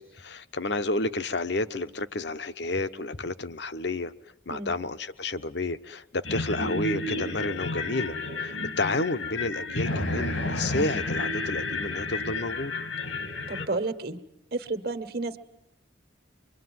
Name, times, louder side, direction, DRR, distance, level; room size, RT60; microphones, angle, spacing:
voice 1, 0.0-4.1 4.5-12.7, left 2 dB, 60° left, 11 dB, 1.0 m, -31 dB
sound 1, 6.2-13.7, left 2 dB, 85° left, 2.7 m, -31 dB
voice 2, 13.5-14.2 14.5-15.4, right 3 dB, 50° right, 9 dB, 1.5 m, -31 dB
25.5 x 23.0 x 9.6 m, 0.81 s
head